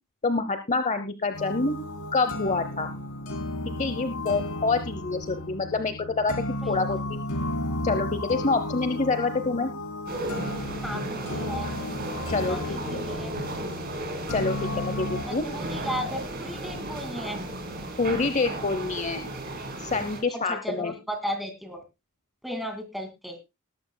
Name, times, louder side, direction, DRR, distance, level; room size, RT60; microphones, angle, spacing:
voice 1, 0.2-1.7 2.1-2.9 3.8-7.2 7.8-9.7 12.3-12.8 14.3-15.4 18.0-19.2 19.8-21.0, left 3 dB, 35° left, 9 dB, 0.8 m, -27 dB
sound 1, 1.3-15.2, left 1 dB, 80° left, 3.6 m, -33 dB
voice 2, 6.6-7.0 10.8-11.7 12.4-13.3 15.3-17.4 20.3-21.8 22.4-23.3, equal, ahead, 5 dB, 2.2 m, -35 dB
sound 2, 10.1-20.2, right 1 dB, 45° right, 3.3 m, -35 dB
20.0 x 12.0 x 2.2 m, 0.24 s
head